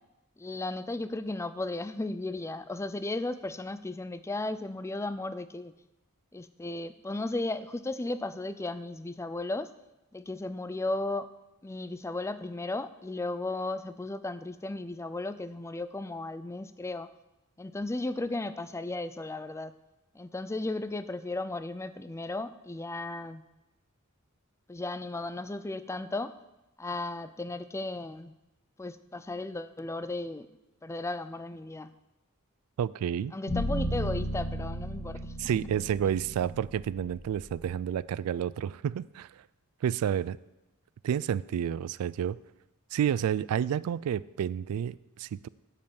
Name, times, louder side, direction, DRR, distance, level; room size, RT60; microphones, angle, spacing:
voice 1, 0.4-5.7 6.3-9.7 10.1-11.3 11.6-17.1 17.6-19.7 20.1-23.4 24.7-26.3 26.8-28.3 28.8-30.5 30.8-31.9 33.3-35.3, left 2 dB, 15° left, 13 dB, 0.4 m, -35 dB
voice 2, 32.8-33.3 35.4-39.3 39.8-40.4 41.0-42.4 42.9-45.5, right 9 dB, 80° right, 18 dB, 0.3 m, -30 dB
sound 1, 33.5-37.7, equal, 70° left, 3.0 m, -35 dB
9.1 x 5.5 x 7.0 m, 0.97 s
head